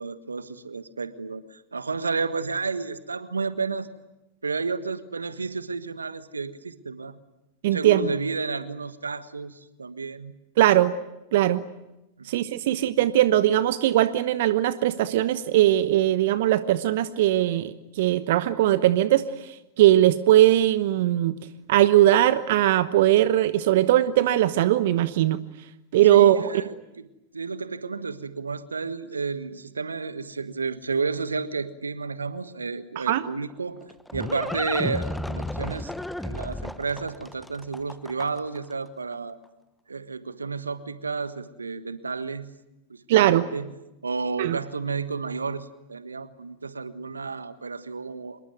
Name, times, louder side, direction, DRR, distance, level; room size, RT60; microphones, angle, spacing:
voice 1, 0.0-3.9 4.4-7.2 7.7-10.3 12.2-12.4 26.1-27.1 27.3-35.9 36.2-39.4 39.9-42.5 42.9-43.7 44.0-48.4, right 4 dB, 85° right, 13 dB, 1.4 m, -31 dB
voice 2, 7.6-8.1 10.6-10.9 11.3-11.6 12.3-21.3 21.7-25.4 25.9-26.4 33.0-33.2 43.1-43.5 44.4-44.6, right 13 dB, 60° right, 13 dB, 1.1 m, -20 dB
Livestock farm animals working animals, 33.5-38.6, left 1 dB, 5° left, 1.1 m, -33 dB
26.5 x 22.0 x 9.4 m, 0.96 s
figure-of-eight pair, 95°, 0 cm